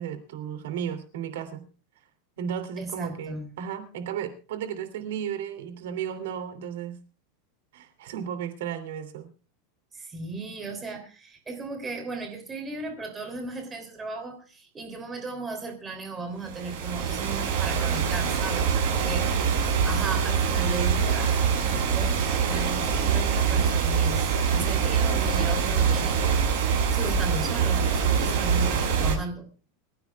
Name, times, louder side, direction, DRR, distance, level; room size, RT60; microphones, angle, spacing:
voice 1, 0.0-1.6 2.4-7.0 7.7-9.3, right 8 dB, 80° right, 9 dB, 2.9 m, -34 dB
voice 2, 2.8-3.5 9.9-26.2 26.9-29.5, right 3 dB, 15° right, 4 dB, 3.2 m, -36 dB
sound 1, 16.5-29.1, right 6 dB, 55° right, 7.8 m, -24 dB
24.0 x 15.5 x 2.4 m, 0.34 s
supercardioid pair, 160°, 0 cm